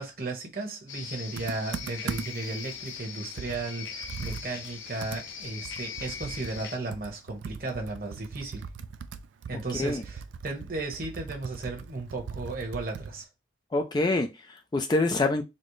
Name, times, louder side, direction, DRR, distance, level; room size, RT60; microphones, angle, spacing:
voice 1, 0.0-8.6 9.5-13.3, right 2 dB, 50° right, 1.1 m, -35 dB
sound 1, 0.9-6.8, left 7 dB, 90° left, 0.7 m, -40 dB
Computer keyboard, 1.4-2.5 3.0-3.1 3.4-13.2, right 5 dB, 85° right, 0.4 m, -40 dB
voice 2, 9.7-10.0 13.7-15.4, left 2 dB, 20° left, 0.3 m, -26 dB
4.2 x 2.1 x 3.1 m
head